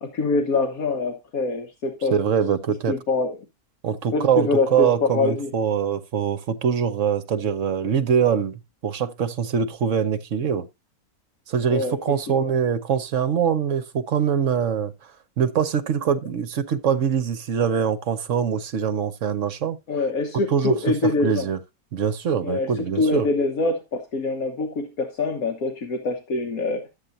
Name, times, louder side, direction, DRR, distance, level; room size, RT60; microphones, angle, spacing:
voice 1, 0.0-2.2 2.9-3.4 4.1-5.5 11.7-12.0 12.4-12.5 19.9-21.5 22.4-26.9, left 3 dB, 70° left, 1.6 m, -24 dB
voice 2, 2.1-3.0 3.8-10.7 11.5-14.9 15.4-19.8 20.5-20.7 21.0-21.6 21.9-23.3, right 7 dB, 60° right, 1.2 m, -23 dB
12.0 x 8.3 x 2.6 m
omnidirectional pair, 1.6 m